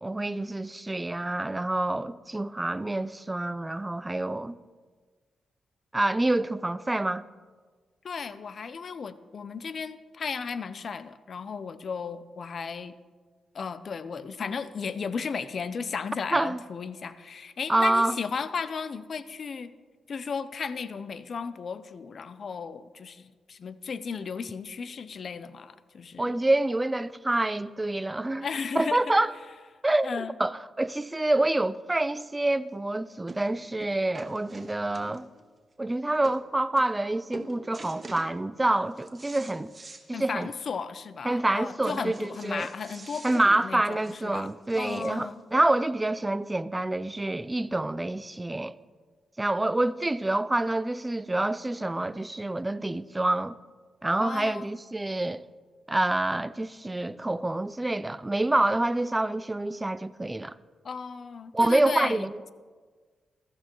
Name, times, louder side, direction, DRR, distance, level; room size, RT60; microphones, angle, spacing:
voice 1, 0.0-4.6 5.9-7.2 16.3-16.6 17.7-18.2 26.2-28.5 28.7-29.3 29.8-35.3 35.8-39.7 40.1-40.5 41.2-42.7 43.2-48.8 49.4-53.6 54.0-55.4 55.9-60.6 61.5-62.4, right 2 dB, 15° right, 0.4 m, -27 dB
voice 2, 8.0-12.9 13.5-19.7 20.1-26.3 28.4-29.1 30.0-30.3 40.1-44.5 44.8-45.4 54.2-54.7 60.8-62.3, left 5 dB, 55° left, 0.6 m, -35 dB
sound 1, 32.5-32.6 33.3-33.5 33.8-35.4 35.9-36.0 36.2-36.4 36.8-37.1 37.3-38.3 38.7-40.1 40.4-40.5 40.8-40.9 41.8-45.3 46.1-46.2, right 3 dB, 35° right, 1.3 m, -45 dB
15.0 x 13.0 x 3.0 m
cardioid pair, 65°, 0 cm